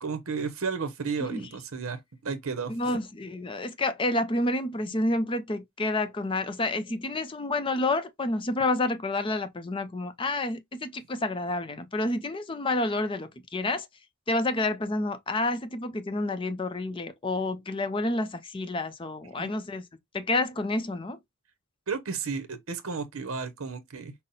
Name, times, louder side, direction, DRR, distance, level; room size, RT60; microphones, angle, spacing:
voice 1, 0.0-2.9 19.4-19.5 21.9-24.1, right 5 dB, 75° right, 0.8 m, -33 dB
voice 2, 2.7-13.9 14.3-19.8 20.1-21.2, left 2 dB, 25° left, 0.5 m, -29 dB
5.7 x 2.0 x 3.9 m
head